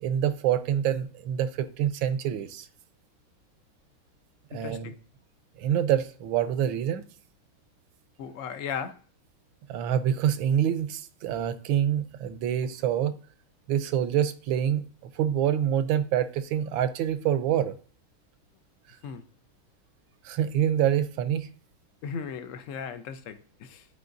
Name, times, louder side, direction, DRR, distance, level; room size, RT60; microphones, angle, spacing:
voice 1, 0.0-2.7 4.5-4.9 5.6-7.0 9.7-13.2 13.7-14.8 15.1-17.8 20.2-21.5, right 10 dB, 85° right, 1.4 m, -26 dB
voice 2, 4.5-5.0 8.2-9.0 19.0-19.2 22.0-23.9, left 6 dB, 65° left, 0.8 m, -36 dB
12.0 x 4.8 x 2.6 m
omnidirectional pair, 2.2 m